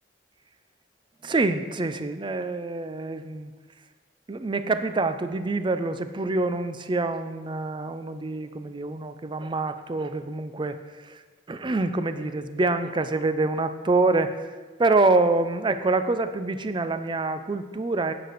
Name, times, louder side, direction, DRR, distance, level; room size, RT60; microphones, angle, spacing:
voice 1, 1.2-3.5 4.3-10.7 11.5-14.3 14.8-18.1, right 3 dB, 25° right, 10 dB, 0.4 m, -26 dB
9.2 x 6.0 x 5.0 m, 1.3 s
head